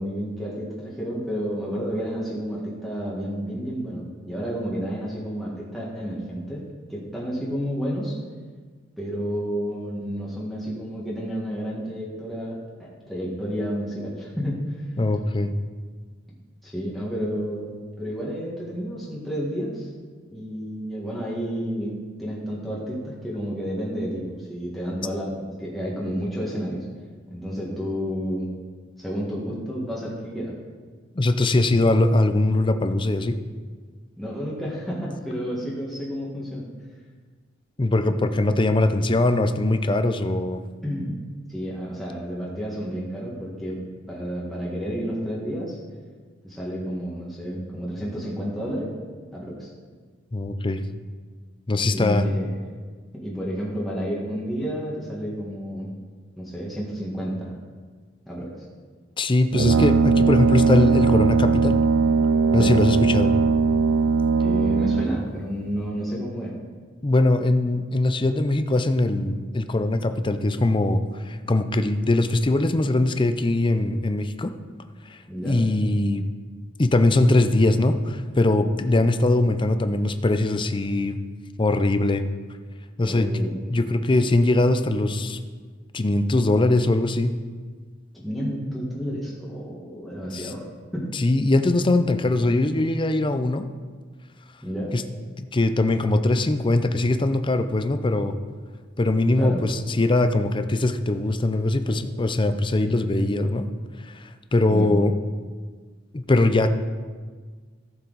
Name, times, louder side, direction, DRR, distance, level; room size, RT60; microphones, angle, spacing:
voice 1, 0.0-8.2 9.0-14.6 16.6-19.9 20.3-21.9 22.2-26.8 27.3-28.5 29.0-30.5 34.2-36.6 40.8-41.2 41.5-43.8 44.1-45.8 46.4-48.9 49.3-49.7 51.9-52.6 53.1-55.9 56.4-57.5 58.2-58.5 62.5-62.8 64.4-66.5 75.3-75.6 83.0-83.7 88.2-90.6 90.9-91.1 94.6-94.9 99.3-99.6 101.9-102.0 104.7-104.9, equal, ahead, -6 dB, 1.7 m, -30 dB
voice 2, 15.0-15.5 31.2-33.3 37.8-40.6 50.3-50.8 51.7-52.2 59.2-61.8 62.5-63.4 67.0-74.5 75.1-76.3 76.8-81.2 81.6-82.2 83.0-83.3 83.7-85.4 85.9-87.3 90.3-90.5 91.1-93.7 94.9-95.0 95.4-98.4 99.0-103.7 104.0-105.1 106.1-106.7, left 2 dB, 25° left, 9 dB, 0.5 m, -21 dB
Brass instrument, 59.5-65.3, right 5 dB, 65° right, 0.4 m, -19 dB
14.5 x 7.2 x 4.1 m, 1.5 s
head